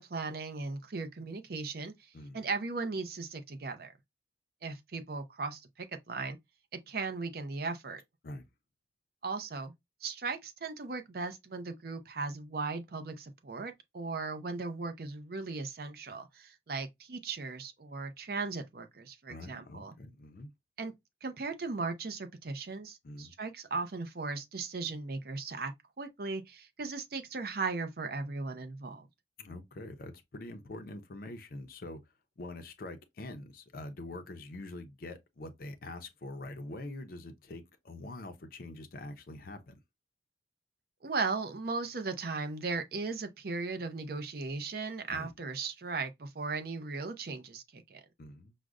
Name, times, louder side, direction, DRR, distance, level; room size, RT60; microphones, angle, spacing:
voice 1, 0.0-1.9 2.3-3.9 4.6-6.4 6.9-8.0 9.2-9.7 10.0-19.9 20.8-20.9 21.2-29.1 41.0-48.0, right 4 dB, 55° right, 0.5 m, -37 dB
voice 2, 19.3-20.5 23.0-23.3 29.4-39.8 45.1-45.3 48.2-48.5, left 2 dB, 50° left, 0.5 m, -44 dB
4.8 x 2.1 x 2.4 m
head